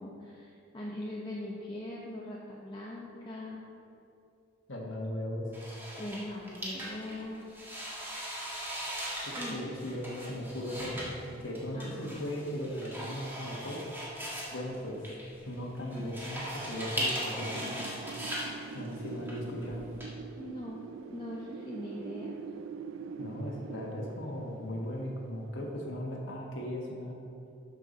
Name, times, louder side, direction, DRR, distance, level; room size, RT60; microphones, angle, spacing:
voice 1, 0.0-3.6 6.0-7.5 9.4-9.7 11.7-12.2 20.4-20.8 21.1-22.4, left 1 dB, 25° left, -5 dB, 0.9 m, -41 dB
voice 2, 4.7-5.5 9.2-13.8 14.5-15.0 15.4-17.8 18.7-19.8 23.2-27.2, left 1 dB, 75° left, -2 dB, 1.4 m, -37 dB
sound 1, 5.5-20.1, equal, 10° right, 1.7 m, -39 dB
Wind, 17.4-26.1, right 5 dB, 80° right, 0.3 m, -44 dB
12.0 x 5.6 x 4.2 m, 2.6 s
head